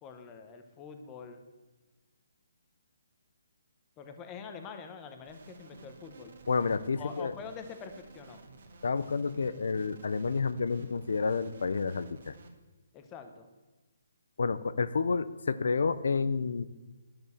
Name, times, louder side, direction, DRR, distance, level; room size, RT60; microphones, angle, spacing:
voice 1, 0.0-1.4 4.0-6.3 7.0-8.4 12.9-13.5, left 5 dB, 15° left, 7 dB, 0.8 m, -45 dB
sound 1, 5.3-12.5, right 3 dB, 50° right, 1.6 m, -53 dB
voice 2, 6.5-7.4 8.8-12.4 14.4-16.6, left 4 dB, 70° left, 14 dB, 0.6 m, -30 dB
11.0 x 6.9 x 6.9 m, 1.2 s
hypercardioid pair, 175°, 0 cm